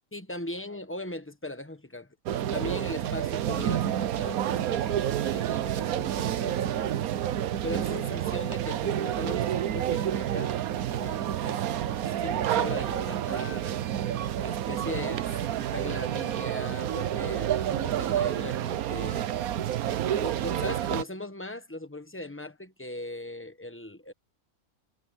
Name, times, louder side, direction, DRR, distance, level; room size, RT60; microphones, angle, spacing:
voice 1, 0.1-2.1 2.5-6.9 7.6-10.6 10.9-13.8 14.4-15.3 15.6-19.6 20.2-24.1, left 1 dB, 10° left, 1.0 m, -39 dB
sound 1, 2.3-21.0, right 11 dB, 90° right, 1.2 m, -29 dB
omnidirectional pair, 1.5 m